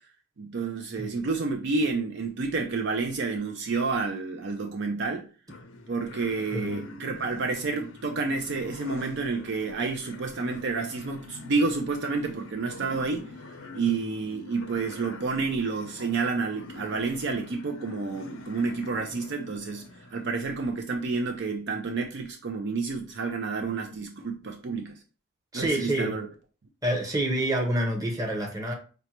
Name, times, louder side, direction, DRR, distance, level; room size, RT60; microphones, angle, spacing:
voice 1, 0.4-5.3 5.9-13.2 13.7-19.9 20.1-24.9 25.5-26.3, right 4 dB, 55° right, 0.5 m, -29 dB
sound 1, 5.5-20.8, left 3 dB, 65° left, 0.5 m, -46 dB
voice 2, 25.5-26.1 26.8-28.7, right 1 dB, 15° right, 0.9 m, -27 dB
5.1 x 2.2 x 2.9 m
head